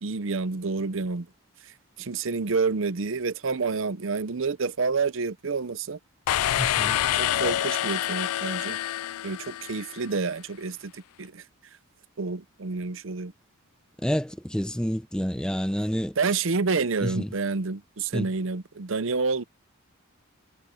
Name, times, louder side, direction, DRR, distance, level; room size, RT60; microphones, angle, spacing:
voice 1, 0.0-1.3 1.6-1.7 2.0-6.0 7.1-8.8 9.2-11.4 12.2-13.3 16.2-19.4, right 4 dB, 60° right, 0.7 m, -28 dB
sound 1, 6.3-10.0, left 12 dB, 85° left, 0.3 m, -27 dB
voice 2, 6.6-7.0 14.0-16.2 17.0-17.3 18.1-18.3, equal, 5° left, 0.7 m, -28 dB
head